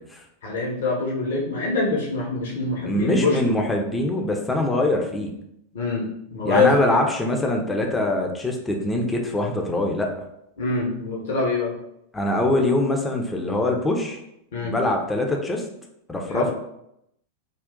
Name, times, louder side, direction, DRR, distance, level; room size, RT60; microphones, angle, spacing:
voice 1, 0.4-3.6 5.7-6.1 6.3-6.7 10.6-11.7 14.5-14.8 16.3-16.5, left 3 dB, 60° left, -3 dB, 0.9 m, -24 dB
voice 2, 2.9-5.3 6.4-10.1 12.1-14.2 14.6-15.6 16.1-16.5, left 1 dB, 10° left, 1 dB, 0.6 m, -23 dB
3.7 x 2.4 x 3.7 m, 0.79 s
figure-of-eight pair, 90°, 0 cm